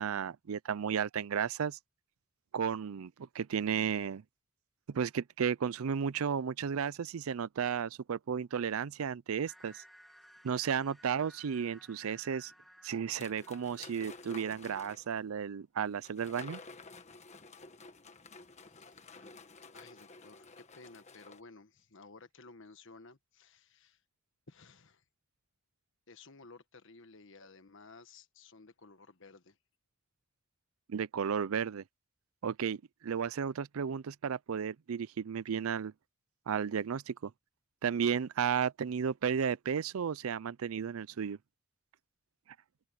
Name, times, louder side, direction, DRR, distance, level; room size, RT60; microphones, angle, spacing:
voice 1, 0.0-1.8 2.5-4.2 4.9-9.8 10.4-12.5 12.8-16.6 30.9-31.8 32.4-35.9 36.5-37.3 37.8-41.4, right 7 dB, 75° right, 0.4 m, -33 dB
sound 1, 9.5-14.5, equal, ahead, 2.0 m, -59 dB
sound 2, 13.1-15.1 16.0-21.4, left 4 dB, 30° left, 1.4 m, -51 dB
voice 2, 18.6-19.3 19.7-24.0 24.5-25.0 26.1-29.6, left 3 dB, 60° left, 1.5 m, -56 dB
open air
head